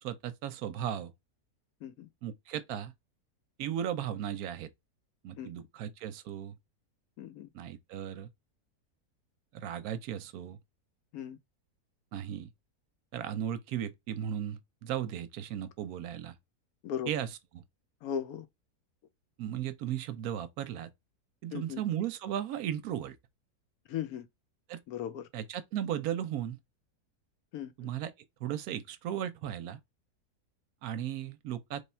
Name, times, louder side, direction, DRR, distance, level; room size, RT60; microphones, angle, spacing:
voice 1, 0.0-1.1 2.2-2.9 3.6-4.7 5.2-6.5 7.5-8.3 9.5-10.6 12.1-12.5 13.1-16.3 17.1-17.6 19.4-20.9 21.4-23.1 24.7-24.8 25.3-26.6 27.8-28.1 28.4-29.8 30.8-31.8, right 10 dB, 75° right, 1.0 m, -36 dB
voice 2, 7.2-7.5 11.1-11.4 16.8-17.1 18.0-18.5 21.5-21.8 23.9-24.3 24.9-25.3 27.5-27.9, left 9 dB, 70° left, 1.1 m, -38 dB
3.3 x 2.3 x 4.2 m
omnidirectional pair, 1.7 m